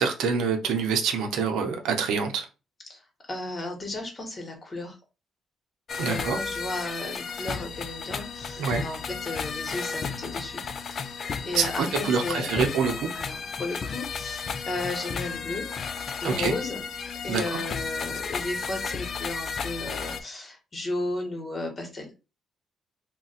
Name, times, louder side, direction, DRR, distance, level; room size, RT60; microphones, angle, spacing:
voice 1, 0.0-2.5 6.0-6.4 8.6-8.8 11.5-13.1 16.2-16.5 17.3-17.6, right 6 dB, 85° right, 0.6 m, -26 dB
voice 2, 3.3-4.9 6.0-10.6 10.9-11.1 11.5-12.6 13.1-15.7 16.2-16.8 17.2-22.1, left 2 dB, 35° left, 1.2 m, -34 dB
sound 1, 5.9-20.2, left 5 dB, 50° left, 0.4 m, -33 dB
2.5 x 2.2 x 4.0 m
cardioid pair, 90°, 0 cm